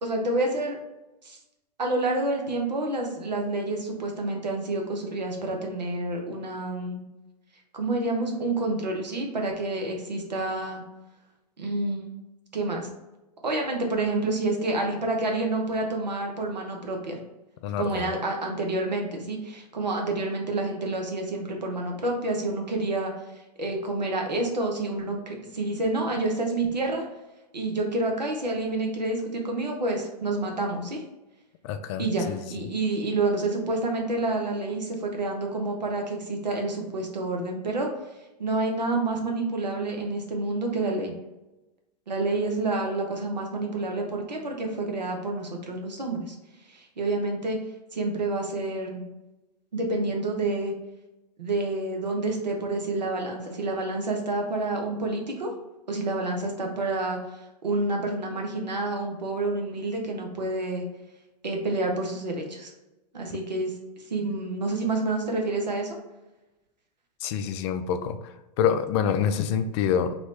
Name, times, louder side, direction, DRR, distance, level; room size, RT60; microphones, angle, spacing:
voice 1, 0.0-0.8 1.2-1.4 1.8-7.0 7.7-10.8 11.6-12.1 12.5-12.9 13.4-17.2 17.8-23.1 23.6-27.0 27.5-31.0 32.0-37.9 38.4-41.2 42.1-46.4 46.7-47.6 47.9-49.0 49.7-50.7 51.4-55.5 55.9-57.2 57.6-60.8 61.4-62.7 63.1-63.7 64.1-66.0, right 2 dB, 90° right, 1 dB, 0.9 m, -28 dB
voice 2, 17.6-18.1 31.6-32.7 67.2-70.2, left 8 dB, 45° left, 10 dB, 0.4 m, -27 dB
3.0 x 3.0 x 4.2 m, 1.0 s
hypercardioid pair, 105°, 21 cm